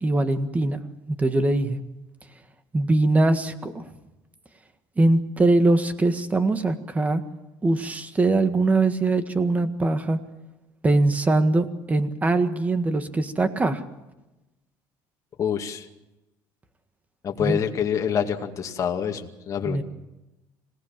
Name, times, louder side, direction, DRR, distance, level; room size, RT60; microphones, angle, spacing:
voice 1, 0.0-0.8 1.1-1.8 2.7-3.9 5.0-7.2 7.6-10.2 10.8-13.8 17.4-17.6 19.7-19.8, right 2 dB, 15° right, 9 dB, 1.8 m, -22 dB
voice 2, 15.4-15.9 17.2-19.8, left 8 dB, 40° left, 3 dB, 2.3 m, -26 dB
26.0 x 18.0 x 7.5 m, 1.0 s
cardioid pair, 130°, 9 cm